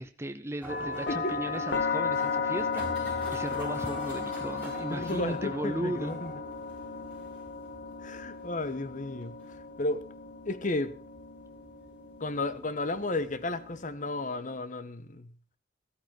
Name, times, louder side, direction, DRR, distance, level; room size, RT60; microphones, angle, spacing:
voice 1, 0.0-6.2, right 1 dB, 15° right, 0.6 m, -37 dB
sound 1, 0.6-13.9, right 1 dB, 10° left, 7.2 m, -45 dB
sound 2, 0.7-14.6, left 5 dB, 70° left, 1.6 m, -36 dB
voice 2, 4.9-6.3 8.0-9.3 9.8-10.0 10.5-10.9 12.2-15.3, left 2 dB, 45° left, 1.1 m, -33 dB
14.5 x 13.5 x 4.6 m
head